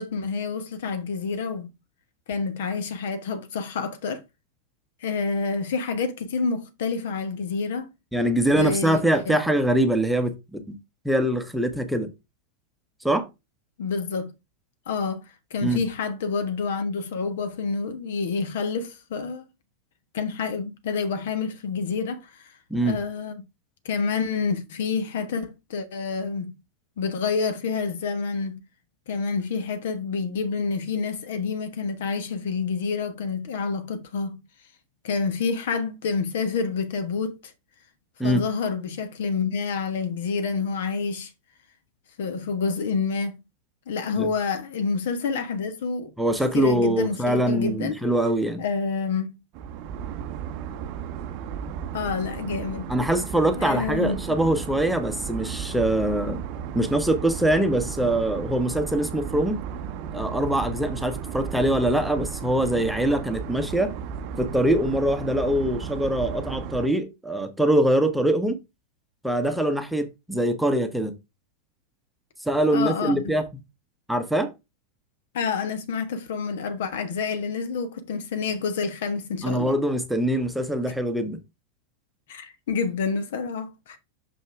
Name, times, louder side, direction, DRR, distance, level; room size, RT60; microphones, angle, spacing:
voice 1, 0.0-1.7 2.3-4.2 5.0-7.9 8.5-9.4 13.8-14.3 14.9-15.2 15.5-19.4 20.1-22.5 22.8-23.4 23.8-26.5 27.0-28.6 29.1-34.4 35.0-37.5 38.2-41.3 42.2-43.4 43.9-46.1 46.5-48.0 48.6-49.3 51.9-52.9 53.6-54.2 72.7-73.3 75.3-79.8 81.2-81.3 82.3-84.0, left 5 dB, 55° left, 1.3 m, -28 dB
voice 2, 8.1-10.8 11.0-12.1 13.0-13.3 15.6-15.8 22.7-23.0 38.2-38.4 44.2-44.3 46.2-48.6 52.9-56.4 56.7-59.6 60.1-63.9 64.4-68.6 69.2-71.2 72.5-73.4 74.1-74.5 79.4-81.4, right 1 dB, ahead, 1.0 m, -23 dB
sound 1, 49.5-66.9, right 8 dB, 45° right, 0.7 m, -34 dB
6.3 x 5.3 x 3.5 m
figure-of-eight pair, 90°, 0 cm